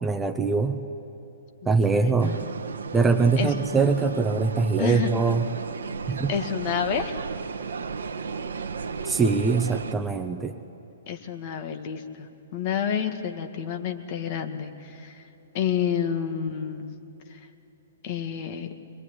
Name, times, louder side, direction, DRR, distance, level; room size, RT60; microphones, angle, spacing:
voice 1, 0.0-0.8 1.7-2.4 2.9-5.5 6.1-6.3 9.0-10.6, right 4 dB, 10° right, 7 dB, 1.1 m, -23 dB
voice 2, 1.6-2.5 3.4-3.5 4.8-5.1 6.3-7.1 11.1-15.1 15.5-16.9 18.0-18.7, left 8 dB, 45° left, 5 dB, 2.1 m, -29 dB
sound 1, 2.2-9.9, right 5 dB, 70° right, 1.5 m, -34 dB
23.5 x 22.5 x 10.0 m, 2.9 s
hypercardioid pair, 120°, 0 cm